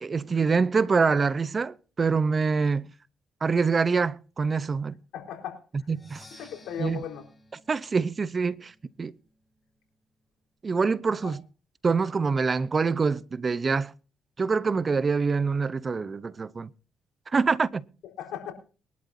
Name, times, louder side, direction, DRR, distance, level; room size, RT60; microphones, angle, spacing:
voice 1, 0.0-2.9 3.4-5.0 5.9-6.2 6.8-7.0 7.7-8.7 9.0-9.1 10.6-11.4 11.8-13.9 14.4-16.7 17.3-17.8, right 4 dB, 35° right, 0.7 m, -25 dB
voice 2, 5.1-5.6 6.4-7.3 11.2-11.3 18.2-18.5, left 9 dB, 90° left, 4.1 m, -36 dB
Percussion, 5.9-9.7, left 1 dB, 20° left, 6.4 m, -55 dB
23.0 x 12.0 x 2.7 m
cardioid pair, 90°, 0 cm